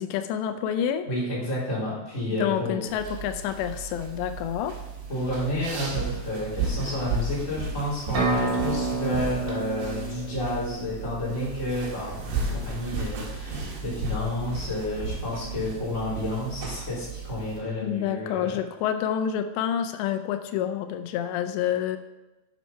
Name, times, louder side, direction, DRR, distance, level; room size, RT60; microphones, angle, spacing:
voice 1, 0.0-1.1 2.4-4.8 17.8-22.0, left 9 dB, 90° left, 9 dB, 2.9 m, -28 dB
voice 2, 1.1-2.8 5.1-18.6, left 1 dB, 20° left, -7 dB, 3.4 m, -30 dB
sound 1, 2.9-17.6, right 3 dB, 80° right, 4.0 m, -34 dB
sound 2, 8.1-11.9, right 3 dB, 45° right, 2.7 m, -30 dB
8.4 x 7.4 x 5.5 m, 1.0 s
omnidirectional pair, 4.9 m